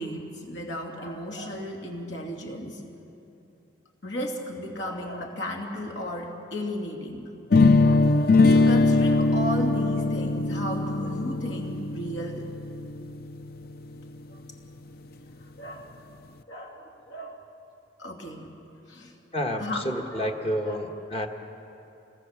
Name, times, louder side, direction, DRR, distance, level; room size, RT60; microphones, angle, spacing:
voice 1, 0.0-2.8 4.0-7.3 7.8-12.5 14.3-14.4 15.6-16.0 16.5-17.4 18.0-18.5 18.9-19.1 19.6-20.9, left 1 dB, 70° left, 1 dB, 2.7 m, -35 dB
sound 1, 7.5-13.4, left 3 dB, 50° left, 0.6 m, -21 dB
voice 2, 19.3-21.3, equal, 30° left, 3 dB, 1.4 m, -29 dB
25.0 x 19.0 x 7.4 m, 2.9 s
head